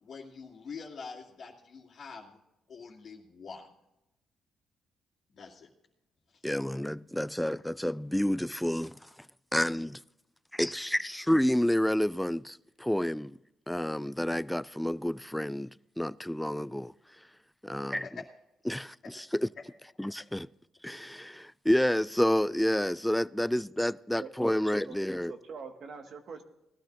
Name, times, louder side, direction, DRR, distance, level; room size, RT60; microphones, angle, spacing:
voice 1, 0.0-2.4 2.7-3.7 5.3-5.7 6.3-6.4 11.0-11.1 18.0-18.1 20.0-20.3, left 5 dB, 55° left, 2.3 m, -45 dB
voice 2, 6.4-9.0 9.5-10.0 10.5-13.4 13.7-15.7 16.0-16.9 17.6-18.1 18.7-19.5 20.0-20.5 20.8-25.3, equal, 5° left, 0.3 m, -29 dB
voice 3, 24.2-25.0 25.3-26.4, right 5 dB, 60° right, 1.7 m, -45 dB
19.5 x 13.0 x 2.6 m
cardioid pair, 90°, 0 cm